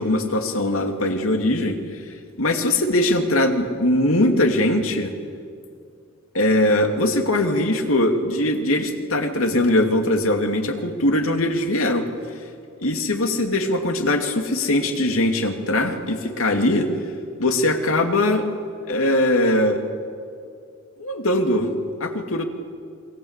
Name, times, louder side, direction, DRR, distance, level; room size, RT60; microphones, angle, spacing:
voice 1, 0.0-1.8 2.4-5.1 6.3-12.1 12.8-16.9 17.4-18.4 18.9-19.8 21.0-21.7 22.0-22.4, left 1 dB, 80° left, 4 dB, 2.6 m, -21 dB
27.5 x 22.5 x 8.2 m, 2.4 s
head